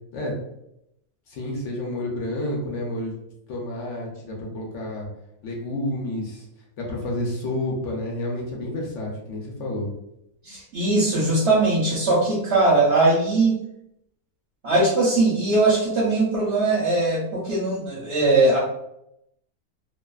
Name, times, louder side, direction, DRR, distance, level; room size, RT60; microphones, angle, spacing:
voice 1, 1.3-3.1 3.5-5.1 5.4-6.5 6.8-9.9, left 1 dB, 60° left, -2 dB, 0.9 m, -30 dB
voice 2, 10.4-13.6 14.6-18.6, right 2 dB, 55° right, -5 dB, 0.8 m, -20 dB
2.5 x 2.4 x 2.3 m, 0.80 s
omnidirectional pair, 1.6 m